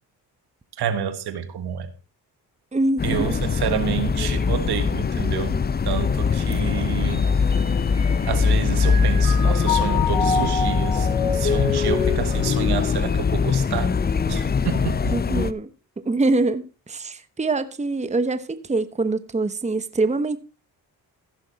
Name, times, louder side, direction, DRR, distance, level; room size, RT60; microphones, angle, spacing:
voice 1, 0.8-1.9 3.0-5.6 5.9-7.3 8.3-11.1 11.3-13.9 14.3-15.2, right 8 dB, 75° right, 1.6 m, -29 dB
voice 2, 2.7-3.4 6.5-6.6 15.1-15.7 16.0-20.4, right 2 dB, 15° right, 1.0 m, -24 dB
sound 1, 3.0-15.5, left 5 dB, 25° left, 0.6 m, -22 dB
Mallet percussion, 7.5-8.4 8.8-14.2, left 5 dB, 45° left, 6.6 m, -28 dB
15.0 x 6.4 x 4.1 m
supercardioid pair, 65°, 39 cm